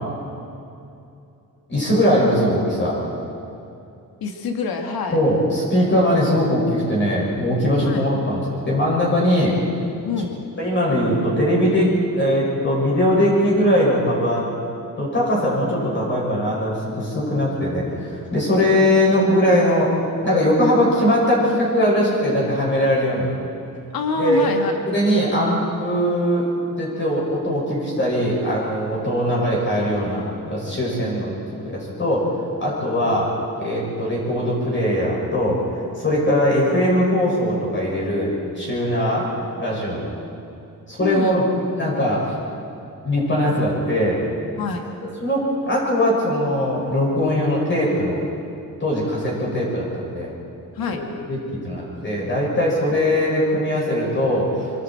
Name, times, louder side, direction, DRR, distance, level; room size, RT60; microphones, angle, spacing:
voice 1, 1.7-2.9 5.1-9.6 10.6-11.9 12.2-14.5 15.0-19.9 20.2-23.3 24.2-24.5 24.9-26.4 26.8-31.3 31.6-32.3 32.6-33.3 33.6-39.3 39.6-40.1 40.9-41.5 41.8-42.3 43.0-44.2 45.2-48.2 48.8-50.3 50.9-51.4 51.6-54.6, equal, 35° left, -5 dB, 6.6 m, -20 dB
voice 2, 4.2-5.2 7.8-8.1 10.0-10.3 23.9-24.7 41.0-41.4 44.6-44.8 50.7-51.0, left 5 dB, 85° left, 3 dB, 1.9 m, -25 dB
25.0 x 25.0 x 4.6 m, 2.7 s
cardioid pair, 130°, 35 cm